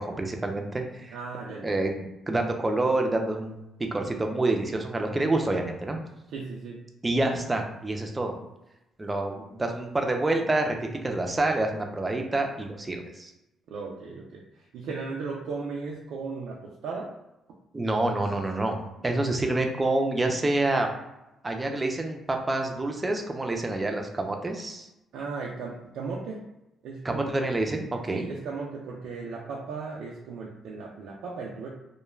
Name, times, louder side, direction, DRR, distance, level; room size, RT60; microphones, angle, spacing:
voice 1, 0.0-1.2 1.6-3.6 3.9-6.0 7.0-8.4 9.0-10.8 11.0-13.3 17.7-18.8 19.0-20.9 21.4-24.9 27.0-28.3, right 2 dB, 20° right, 3 dB, 0.5 m, -27 dB
voice 2, 1.1-1.7 6.3-6.8 13.7-16.6 16.8-17.1 25.1-26.4 26.8-27.3 28.1-31.7, right 4 dB, 80° right, -3 dB, 0.4 m, -36 dB
2.3 x 2.2 x 3.1 m, 0.91 s
cardioid pair, 90°, 0 cm